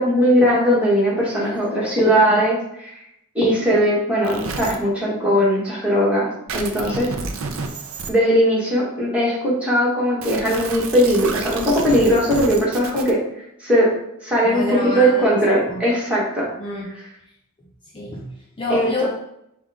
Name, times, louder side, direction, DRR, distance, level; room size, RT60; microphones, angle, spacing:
voice 1, 0.0-2.9 3.3-7.1 8.1-13.2 13.6-13.9 14.2-14.7 14.9-16.5 18.7-19.1, equal, 5° right, -6 dB, 1.4 m, -19 dB
voice 2, 1.4-1.9 6.7-7.1 14.4-15.4 15.7-15.8 16.6-16.9 17.9-19.1, left 2 dB, 25° left, -3 dB, 0.5 m, -29 dB
sound 1, 4.2-4.8 6.5-8.1 10.2-13.1, right 4 dB, 65° right, 0.5 m, -30 dB
5.5 x 2.4 x 3.5 m, 0.78 s
head